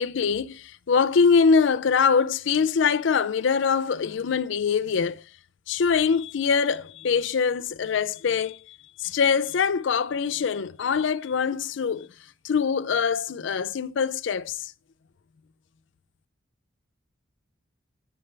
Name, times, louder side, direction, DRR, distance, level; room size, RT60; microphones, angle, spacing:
voice 1, 0.0-5.2 5.7-12.1 12.4-14.7, left 6 dB, 70° left, 0.4 m, -23 dB
8.7 x 6.8 x 3.3 m
head